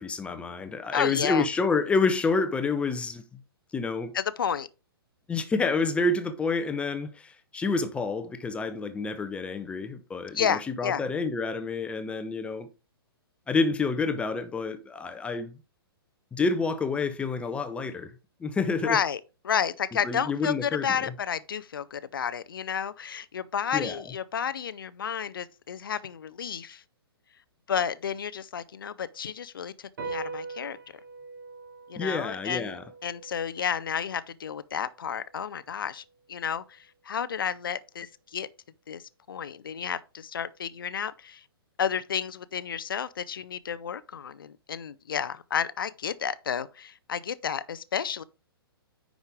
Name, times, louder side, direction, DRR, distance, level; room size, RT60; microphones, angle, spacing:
voice 1, 0.0-3.2 3.7-4.1 5.3-12.7 13.5-15.5 16.3-18.1 18.4-19.0 20.0-20.9 23.7-24.0 32.0-32.8, left 4 dB, 10° left, 0.6 m, -28 dB
voice 2, 0.9-1.5 4.1-4.7 10.3-11.0 18.8-26.8 27.7-30.8 31.9-32.8 33.0-36.0 36.3-38.5 38.9-39.0 39.3-41.4 41.8-48.2, left 7 dB, 60° left, 0.5 m, -31 dB
sound 1, 30.0-36.7, right 4 dB, 55° right, 2.3 m, -43 dB
9.7 x 5.1 x 3.6 m
figure-of-eight pair, 115°, 13 cm